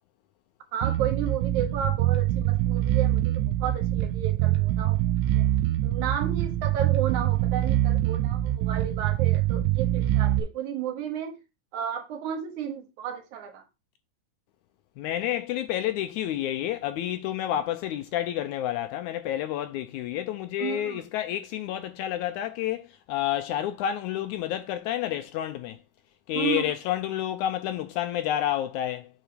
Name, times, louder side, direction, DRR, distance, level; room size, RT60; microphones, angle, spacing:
voice 1, 0.7-5.0 5.3-5.5 5.8-11.4 11.7-13.6 20.6-21.0 26.3-26.7, right 8 dB, 70° right, 2.4 m, -33 dB
Bass guitar, 0.8-10.4, right 13 dB, 90° right, 2.3 m, -24 dB
voice 2, 15.0-22.8 23.1-25.8 26.3-29.1, left 12 dB, 80° left, 1.8 m, -29 dB
7.8 x 3.8 x 4.9 m
omnidirectional pair, 3.8 m